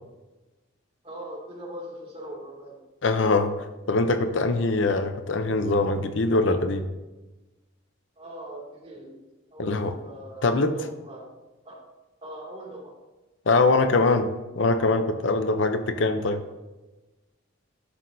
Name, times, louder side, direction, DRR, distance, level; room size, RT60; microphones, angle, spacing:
voice 1, 1.0-2.8 8.2-9.1 9.5-11.2 11.6-11.8 12.2-12.9, right 1 dB, 30° right, -4 dB, 2.4 m, -40 dB
voice 2, 3.0-6.9 9.6-10.0 10.4-10.7 13.5-14.3 14.6-16.4, left 3 dB, 70° left, 8 dB, 0.7 m, -23 dB
11.5 x 6.4 x 2.7 m, 1.1 s
head